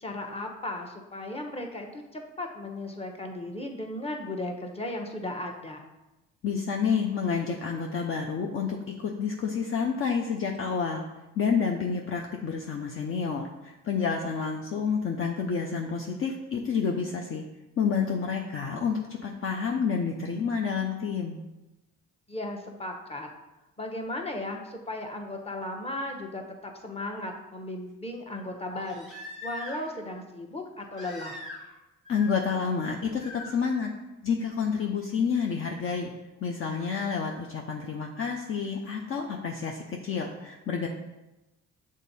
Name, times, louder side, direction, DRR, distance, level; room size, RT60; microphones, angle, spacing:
voice 1, 0.0-5.8 22.3-23.3 23.8-29.1 29.4-31.4, left 1 dB, 20° left, 2 dB, 1.0 m, -36 dB
voice 2, 6.4-11.0 11.4-17.4 17.8-21.4 32.1-33.9 34.2-36.1 36.4-40.9, left 6 dB, 45° left, 2 dB, 0.6 m, -29 dB
Crying sobbing, 28.7-30.0 30.9-31.8 32.0-32.6 33.2-33.5 35.1-35.2, left 2 dB, 75° left, 2.1 m, -42 dB
6.5 x 3.6 x 4.1 m, 1.0 s
cardioid pair, 90°, 30 cm